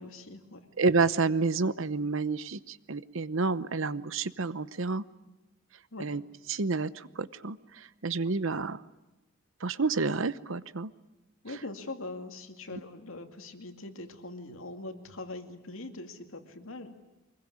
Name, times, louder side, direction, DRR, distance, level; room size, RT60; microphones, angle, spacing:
voice 1, 0.0-0.7 5.9-6.1 8.2-8.3 11.4-17.0, left 2 dB, 75° left, 6 dB, 2.4 m, -42 dB
voice 2, 0.8-5.0 6.0-6.2 6.5-8.8 9.6-10.9 12.7-12.8, right 4 dB, 70° right, 16 dB, 0.9 m, -29 dB
24.5 x 21.5 x 9.8 m, 1.0 s
head